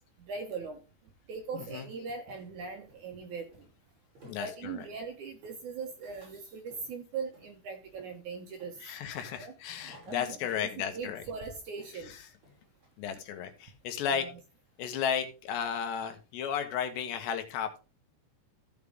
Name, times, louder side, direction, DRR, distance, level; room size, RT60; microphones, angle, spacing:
voice 1, 0.3-0.8 1.3-3.5 4.2-8.7 9.4-9.5 9.8-12.1 14.1-14.3, right 5 dB, 70° right, 1.9 m, -40 dB
voice 2, 1.5-1.9 4.3-4.9 8.8-11.2 12.1-12.2 13.0-14.3 14.8-17.8, left 8 dB, 75° left, 3.3 m, -34 dB
sound 1, 2.3-12.9, equal, 35° right, 7.9 m, -61 dB
14.5 x 5.6 x 3.6 m
omnidirectional pair, 5.2 m